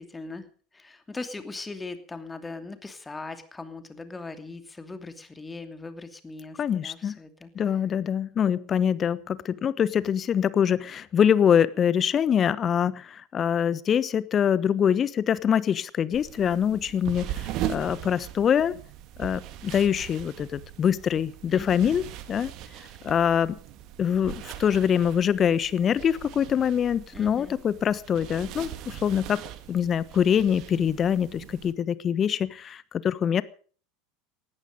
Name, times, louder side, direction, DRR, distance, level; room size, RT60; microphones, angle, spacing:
voice 1, 0.0-7.5 21.5-22.0 27.1-27.5, left 3 dB, 15° left, 9 dB, 2.7 m, -40 dB
voice 2, 6.6-7.2 7.5-18.8 19.2-22.5 23.0-23.6 24.0-29.4 29.7-33.4, left 8 dB, 30° left, 18 dB, 1.2 m, -24 dB
sound 1, 16.1-31.7, right 11 dB, 50° right, 2.1 m, -40 dB
19.0 x 14.5 x 5.2 m, 0.43 s
figure-of-eight pair, 75°, 0 cm